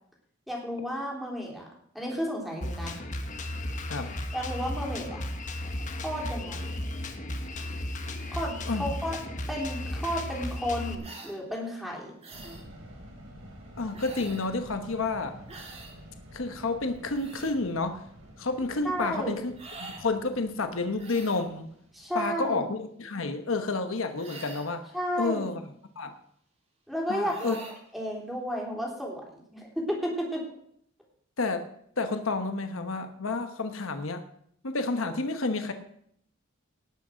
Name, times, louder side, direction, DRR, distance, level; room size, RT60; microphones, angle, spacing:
voice 1, 0.5-1.7 1.9-3.0 4.3-5.2 6.0-6.7 8.3-9.2 9.5-12.1 18.8-19.4 21.9-22.6 24.9-25.5 26.9-27.6 27.9-30.4, equal, ahead, -2 dB, 3.4 m, -32 dB
Drum kit, 2.6-10.9, left 1 dB, 35° left, 1.3 m, -35 dB
voice 2, 3.9-4.2 8.7-8.8 13.8-15.3 16.3-18.0 18.4-19.5 19.8-21.7 22.1-24.9 25.2-25.6 26.0-26.1 27.1-27.6 31.4-31.7 32.0-34.2 34.6-35.7, left 3 dB, 75° left, 7 dB, 1.1 m, -30 dB
sound 1, 11.0-11.4 12.2-12.7 13.9-14.5 15.5-16.0 16.9-17.5 19.5-20.1 21.0-21.5 24.2-24.8 27.2-27.8, right 3 dB, 30° right, 2.6 m, -45 dB
sound 2, 12.3-22.5, equal, 75° right, 5.3 m, -49 dB
18.5 x 6.3 x 6.4 m, 0.68 s
head